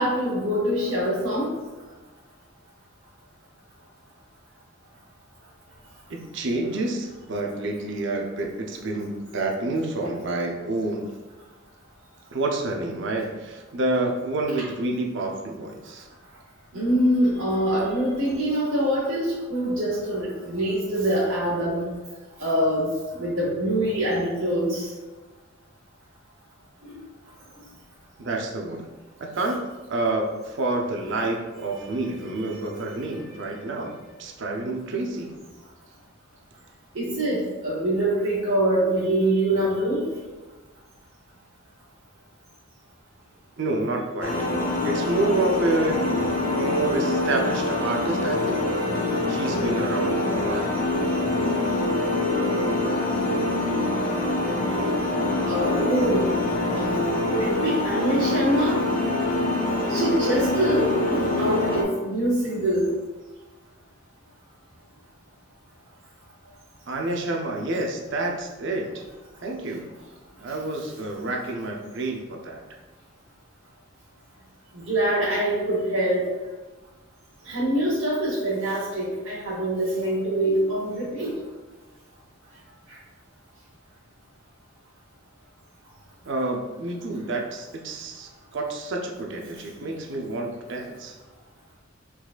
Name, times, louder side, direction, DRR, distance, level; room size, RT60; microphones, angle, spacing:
voice 1, 0.0-1.5 16.7-21.9 22.4-24.9 26.8-27.0 31.7-32.0 32.3-32.8 33.3-33.5 36.9-40.1 55.5-56.3 56.7-58.8 59.8-62.9 74.7-76.2 77.4-81.3 82.9-83.0, right 1 dB, 90° right, -8 dB, 1.1 m, -24 dB
voice 2, 6.1-11.1 12.3-16.1 28.2-28.9 29.2-29.6 29.9-33.9 34.2-35.4 43.6-44.3 44.8-46.1 46.5-48.6 49.0-50.7 66.9-69.0 69.4-69.8 70.4-72.6 86.3-91.1, right 2 dB, 65° right, 1 dB, 0.7 m, -28 dB
sound 1, 44.2-61.8, left 2 dB, 45° left, 0.8 m, -25 dB
4.6 x 4.1 x 2.5 m, 1.2 s
head